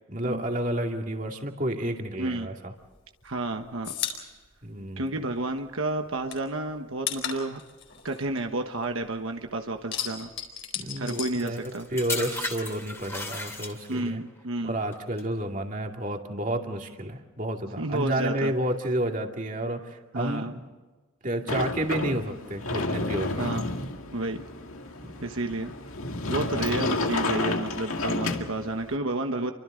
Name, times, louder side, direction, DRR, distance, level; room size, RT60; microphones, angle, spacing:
voice 1, 0.1-2.7 4.6-5.1 10.8-14.2 14.6-20.7 21.2-23.3 25.0-25.1, right 1 dB, 40° right, 3 dB, 2.4 m, -30 dB
sound 1, 2.8-5.6 5.9-9.2 9.5-12.1 12.4-13.5, left 9 dB, 60° left, 4.4 m, -36 dB
voice 2, 3.2-3.9 5.0-7.6 8.0-10.3 11.0-11.9 13.9-14.8 17.8-18.5 20.1-20.5 23.4-23.7 24.1-24.5 25.2-25.7 26.3-29.5, right 2 dB, 80° right, 5 dB, 1.3 m, -31 dB
sound 2, 11.1-14.1 14.9-15.2, left 2 dB, 10° left, 2.8 m, -35 dB
Sliding door, 21.5-28.9, left 2 dB, 85° left, 2.1 m, -31 dB
30.0 x 24.5 x 3.9 m, 1.3 s
head